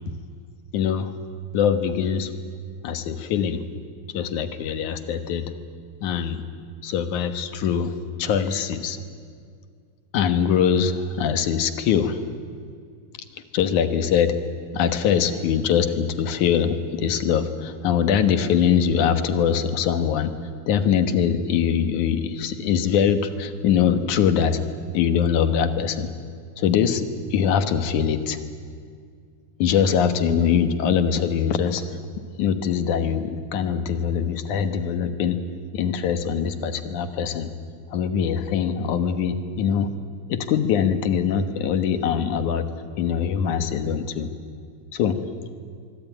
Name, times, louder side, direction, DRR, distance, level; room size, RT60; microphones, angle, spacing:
voice 1, 0.7-1.1 1.5-2.3 2.8-3.6 4.1-5.5 6.0-6.4 6.8-9.0 10.1-12.2 13.3-14.3 14.7-20.3 20.7-24.6 24.9-26.1 26.6-28.4 29.6-31.8 32.4-35.4 35.7-37.5 37.9-39.9 40.3-42.7 43.0-44.3 44.9-45.2, left 7 dB, 75° left, 9 dB, 2.8 m, -22 dB
24.5 x 24.0 x 9.3 m, 2.2 s
omnidirectional pair, 3.5 m